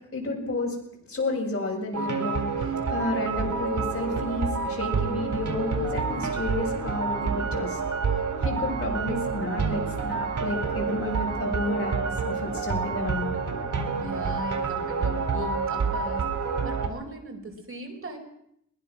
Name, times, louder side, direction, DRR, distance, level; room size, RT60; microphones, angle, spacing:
voice 1, 0.1-0.7 1.1-2.5 2.9-7.8 8.4-13.3, left 2 dB, 50° left, -1 dB, 7.0 m, -31 dB
sound 1, 1.9-16.9, right 5 dB, 75° right, 4.0 m, -28 dB
voice 2, 14.0-16.2 16.6-18.2, right 2 dB, 45° right, 2 dB, 4.5 m, -38 dB
21.5 x 21.5 x 6.2 m, 0.72 s
wide cardioid pair, 150°, 30 cm